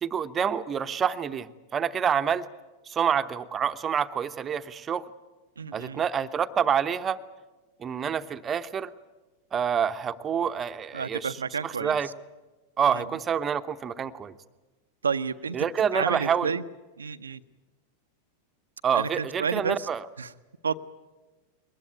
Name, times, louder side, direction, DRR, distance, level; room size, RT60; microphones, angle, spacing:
voice 1, 0.0-2.5 2.9-5.1 5.7-7.2 7.8-8.9 9.5-11.3 11.6-12.1 12.8-14.3 15.5-16.5 18.8-20.0, right 7 dB, 25° right, 10 dB, 0.9 m, -27 dB
voice 2, 5.6-6.0 10.9-12.1 12.9-13.1 15.0-15.6 15.9-16.6 17.0-17.4 18.9-19.9 20.2-20.3 20.6-20.8, right 6 dB, 70° right, 13 dB, 0.7 m, -30 dB
22.0 x 19.5 x 9.2 m, 1.2 s
figure-of-eight pair, 90°, 0 cm